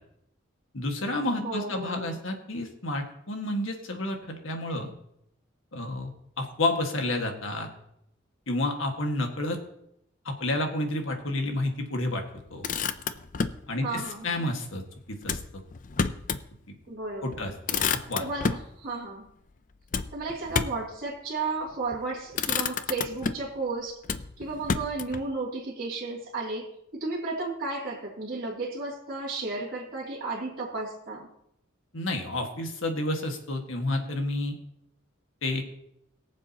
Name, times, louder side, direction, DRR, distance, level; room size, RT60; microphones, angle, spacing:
voice 1, 0.7-4.9 5.7-7.7 8.5-9.6 10.3-12.2 12.5-12.7 13.7-14.8 15.1-15.4 17.2-18.2 31.9-34.6 35.4-35.6, left 1 dB, 80° left, 3 dB, 1.7 m, -30 dB
voice 2, 1.4-2.2 13.8-14.4 16.9-17.5 18.2-19.3 20.1-24.0 24.4-31.3, right 3 dB, 45° right, -7 dB, 2.7 m, -33 dB
Motor vehicle (road), 12.4-13.7 15.2-16.5 16.9-17.0 17.3-18.7 19.9-20.9 21.7-22.0 22.3-23.6 24.0-25.3, left 5 dB, 40° left, 0.5 m, -30 dB
22.0 x 7.4 x 2.9 m, 0.77 s
head